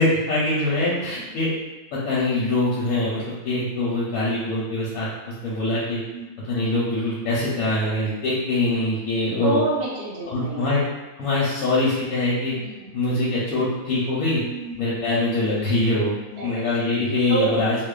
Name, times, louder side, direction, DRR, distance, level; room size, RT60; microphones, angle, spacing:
voice 1, 0.0-1.5 2.0-5.1 5.4-6.0 6.5-9.6 10.3-10.8 11.2-12.5 12.9-14.4 14.8-16.2 16.4-17.8, left 2 dB, 85° left, -8 dB, 1.1 m, -23 dB
voice 2, 0.9-1.3 6.1-6.3 9.4-10.7 12.6-13.0 14.4-15.0 16.3-16.7 17.3-17.7, right 3 dB, 55° right, -7 dB, 0.8 m, -28 dB
2.9 x 2.0 x 2.3 m, 1.1 s
omnidirectional pair, 1.5 m